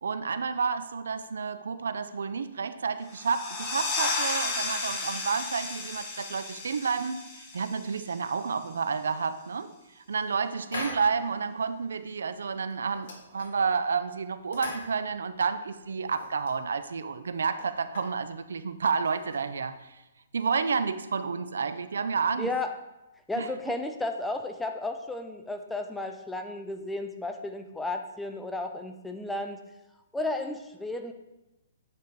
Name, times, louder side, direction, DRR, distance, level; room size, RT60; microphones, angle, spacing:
voice 1, 0.0-9.7 10.0-19.8 20.3-22.5 23.4-23.5, right 5 dB, 85° right, 11 dB, 0.5 m, -30 dB
sound 1, 3.1-8.4, left 3 dB, 25° left, 1.3 m, -33 dB
sound 2, 10.7-11.4 11.6-11.7 12.2-12.4 12.7-13.8 14.4-15.5 15.8-16.6 17.1-17.2 17.4-18.2 18.9-19.7, left 3 dB, 60° left, 1.6 m, -41 dB
voice 2, 22.4-22.7 23.3-29.6 30.1-31.1, left 2 dB, 5° left, 5 dB, 0.5 m, -33 dB
8.7 x 4.2 x 4.6 m, 0.96 s
hypercardioid pair, 145°, 0 cm